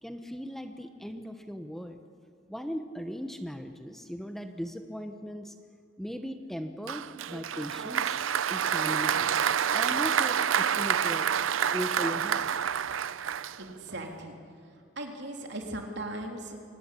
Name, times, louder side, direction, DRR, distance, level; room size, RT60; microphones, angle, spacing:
voice 1, 0.0-2.0 2.5-5.5 6.0-8.2 8.5-11.3 11.7-12.5, equal, ahead, 6 dB, 1.0 m, -38 dB
Applause, 6.9-14.0, right 8 dB, 85° right, 0.6 m, -28 dB
voice 2, 13.6-14.3 15.0-16.6, right 1 dB, 60° right, 2 dB, 3.4 m, -38 dB
24.0 x 19.5 x 8.5 m, 2.3 s
head